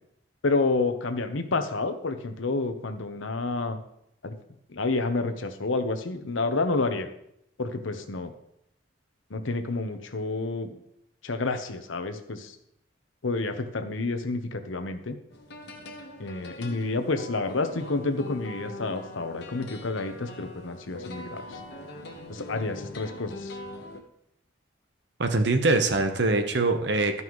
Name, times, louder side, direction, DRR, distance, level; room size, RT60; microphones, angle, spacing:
voice 1, 0.4-3.8 4.2-4.3 4.7-7.1 7.6-8.3 9.3-10.7 11.2-12.6 13.2-15.1 16.2-21.6 22.3-23.6, left 3 dB, 90° left, 8 dB, 0.9 m, -29 dB
sound 1, 15.3-24.0, left 1 dB, 55° left, 1.1 m, -42 dB
voice 2, 25.2-27.2, right 2 dB, 60° right, 7 dB, 0.9 m, -23 dB
13.5 x 5.5 x 3.1 m, 0.77 s
head